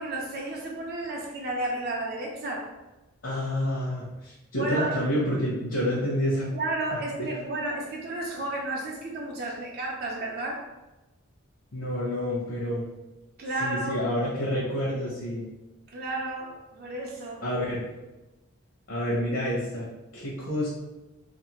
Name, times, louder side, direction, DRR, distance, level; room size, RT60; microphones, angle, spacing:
voice 1, 0.0-2.7 4.5-4.9 6.5-10.7 13.4-14.0 15.9-17.4, right 2 dB, 50° right, -1 dB, 0.4 m, -32 dB
voice 2, 3.2-6.5 6.9-7.3 11.7-12.9 13.6-15.4 17.4-17.8 18.9-19.9 20.1-20.7, equal, 65° left, -6 dB, 0.7 m, -28 dB
2.5 x 2.4 x 2.9 m, 1.0 s
head